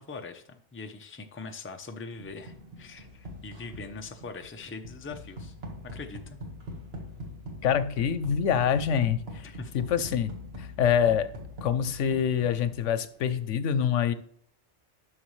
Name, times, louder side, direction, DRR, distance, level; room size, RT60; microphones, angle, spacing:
voice 1, 0.0-5.5 5.9-6.4 9.4-9.8, left 4 dB, 15° left, 5 dB, 0.5 m, -42 dB
sound 1, 2.2-13.1, left 1 dB, 55° right, 1.8 m, -43 dB
voice 2, 7.6-10.3 10.6-11.3 11.6-14.1, left 8 dB, 90° left, 13 dB, 1.0 m, -26 dB
11.5 x 6.2 x 3.2 m, 0.63 s
omnidirectional pair, 1.2 m